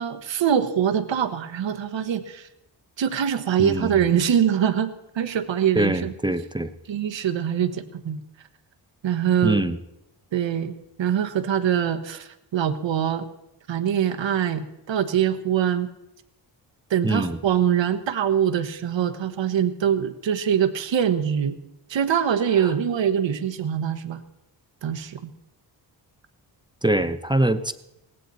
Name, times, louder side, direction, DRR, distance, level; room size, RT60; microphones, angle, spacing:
voice 1, 0.0-2.5 3.0-6.1 6.9-8.2 9.0-9.7 10.3-10.7 11.0-13.3 13.7-15.9 16.9-21.6 21.9-24.2 24.8-25.2, right 9 dB, 80° right, 9 dB, 1.3 m, -23 dB
voice 2, 3.6-4.1 5.7-6.7 9.4-9.8 17.0-17.4 22.6-22.7 26.8-27.7, right 1 dB, 10° right, 9 dB, 0.8 m, -23 dB
18.0 x 15.5 x 4.1 m, 0.86 s
cardioid pair, 85°, 44 cm